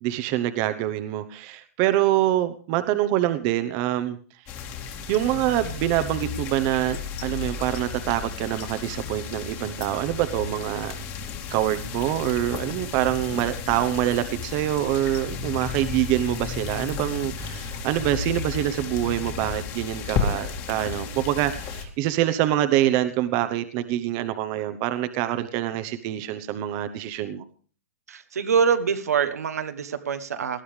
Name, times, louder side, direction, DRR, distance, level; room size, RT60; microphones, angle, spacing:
voice 1, 0.0-4.2 5.1-11.0 11.5-27.4, right 13 dB, 40° right, 10 dB, 1.0 m, -25 dB
sound 1, 4.5-21.8, left 6 dB, 35° left, 2.4 m, -33 dB
voice 2, 28.1-30.6, right 6 dB, 80° right, 9 dB, 1.2 m, -24 dB
19.0 x 12.5 x 3.4 m, 0.41 s
hypercardioid pair, 125°, 8 cm